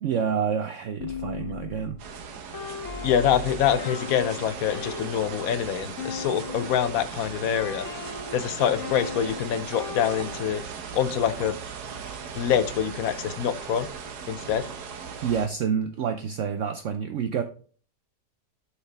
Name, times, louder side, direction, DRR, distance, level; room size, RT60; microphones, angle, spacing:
voice 1, 0.0-2.0 15.2-17.4, right 7 dB, 65° right, 7 dB, 0.8 m, -28 dB
sound 1, 1.0-6.9 7.5-10.7, left 6 dB, 55° left, 1.2 m, -38 dB
sound 2, 2.0-15.5, right 6 dB, 85° right, 1.5 m, -38 dB
voice 2, 3.0-7.9 8.3-10.6 10.9-11.6 12.4-13.9 14.3-14.7, left 9 dB, 70° left, 13 dB, 1.1 m, -25 dB
8.1 x 5.8 x 3.4 m, 0.42 s
omnidirectional pair, 1.6 m